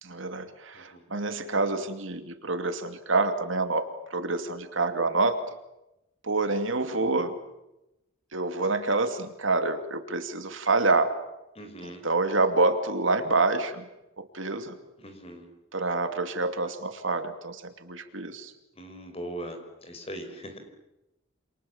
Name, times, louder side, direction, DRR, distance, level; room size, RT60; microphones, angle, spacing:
voice 1, 0.0-5.4 6.2-7.3 8.3-11.1 11.8-13.8 14.2-14.8 15.7-18.5, right 3 dB, 65° right, 8 dB, 2.7 m, -27 dB
voice 2, 11.6-12.0 15.0-15.5 18.8-20.6, right 1 dB, 30° left, 6 dB, 5.5 m, -40 dB
29.0 x 28.0 x 7.4 m, 0.92 s
head